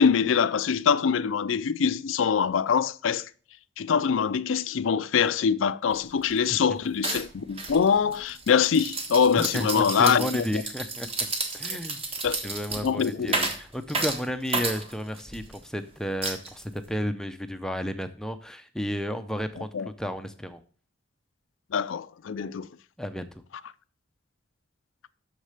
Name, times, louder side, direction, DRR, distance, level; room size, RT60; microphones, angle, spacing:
voice 1, 0.0-3.3 3.8-10.4 12.2-12.4 12.8-13.3 19.7-19.9 21.7-22.7, left 6 dB, 90° left, 0.4 m, -24 dB
sound 1, 5.9-6.0 6.3-6.6 7.0-15.6 16.2-16.9, right 3 dB, 30° right, 1.5 m, -32 dB
voice 2, 6.5-6.8 9.3-11.1 11.5-12.0 12.3-20.6 23.0-23.3, equal, 5° left, 0.5 m, -32 dB
6.6 x 6.5 x 6.5 m
head